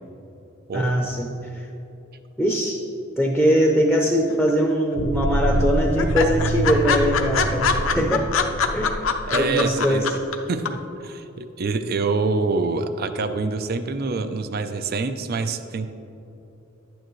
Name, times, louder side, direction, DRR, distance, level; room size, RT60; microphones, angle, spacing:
voice 1, 0.7-1.3 2.4-2.8 3.2-8.3 8.7-10.1, equal, ahead, 1 dB, 0.6 m, -21 dB
sound 1, 4.3-4.9 5.2-5.3 5.6-5.7 6.0-10.3 10.6-10.7, left 6 dB, 70° left, 0.6 m, -23 dB
sound 2, 5.0-9.7, right 1 dB, 85° right, 0.7 m, -26 dB
voice 2, 9.3-15.9, right 3 dB, 50° right, 9 dB, 0.5 m, -26 dB
11.0 x 9.1 x 3.1 m, 2.9 s
head